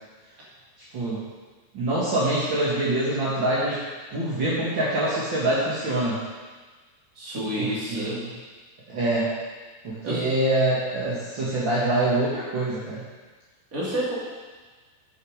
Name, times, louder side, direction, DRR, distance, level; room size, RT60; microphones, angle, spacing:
voice 1, 1.7-3.8 4.1-6.2 7.6-8.1 8.9-9.3 9.8-13.0, right 1 dB, 45° right, -9 dB, 1.5 m, -25 dB
voice 2, 7.1-8.2 10.0-10.2 13.7-14.1, equal, 25° right, -7 dB, 2.4 m, -29 dB
12.0 x 6.7 x 4.9 m, 1.4 s
omnidirectional pair, 4.9 m